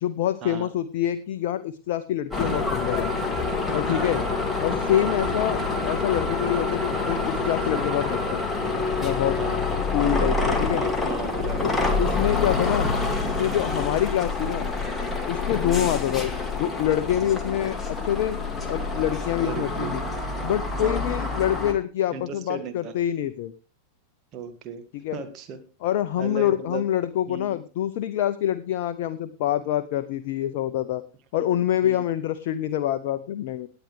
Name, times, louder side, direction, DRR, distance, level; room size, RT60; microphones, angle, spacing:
voice 1, 0.0-3.1 3.7-4.2 4.6-8.4 9.0-9.4 9.9-10.9 11.6-12.9 13.2-14.7 15.3-16.3 16.6-18.4 18.7-20.0 20.4-23.5 24.9-25.2 25.8-31.0 31.3-33.7, left 11 dB, 50° left, 12 dB, 0.6 m, -26 dB
sound 1, 2.3-21.7, left 3 dB, 10° left, 2.3 m, -27 dB
voice 2, 3.9-4.4 5.0-5.2 9.4-9.7 10.8-11.9 15.6-16.0 19.4-19.9 20.8-21.1 22.1-22.9 24.3-24.8 25.1-25.6 26.2-26.8 27.3-27.6 31.8-32.0, right 6 dB, 35° right, 8 dB, 1.8 m, -36 dB
18.0 x 8.9 x 3.3 m, 0.30 s
figure-of-eight pair, 90°, 0 cm